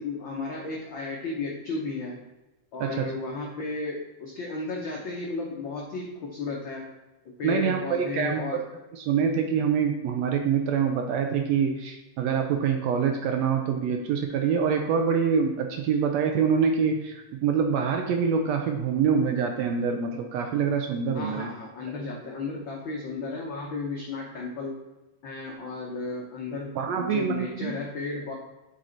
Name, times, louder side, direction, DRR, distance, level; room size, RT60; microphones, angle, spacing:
voice 1, 0.0-2.2 2.7-6.9 7.2-8.6 21.1-24.8 25.2-28.3, left 3 dB, 75° left, -1 dB, 1.1 m, -34 dB
voice 2, 7.4-8.4 8.9-21.5 26.7-27.8, right 6 dB, 75° right, 4 dB, 1.7 m, -25 dB
7.4 x 5.3 x 3.9 m, 1.0 s
omnidirectional pair, 3.4 m